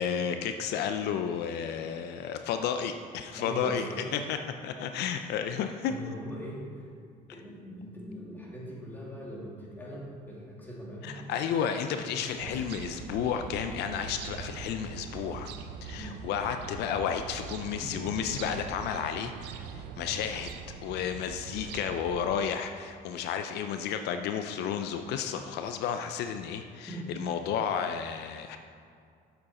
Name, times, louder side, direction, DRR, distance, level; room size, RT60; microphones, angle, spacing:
voice 1, 0.0-6.0 11.0-15.5 15.8-20.5 20.8-28.6, left 8 dB, 80° left, 7 dB, 0.5 m, -32 dB
voice 2, 3.3-4.1 5.9-6.7 7.3-11.2 12.1-12.6 15.9-16.2 26.9-27.0, equal, 10° left, -5 dB, 2.3 m, -41 dB
sound 1, 12.4-22.4, right 6 dB, 85° right, 0.6 m, -42 dB
7.7 x 7.1 x 4.2 m, 2.3 s
cardioid pair, 110°, 17 cm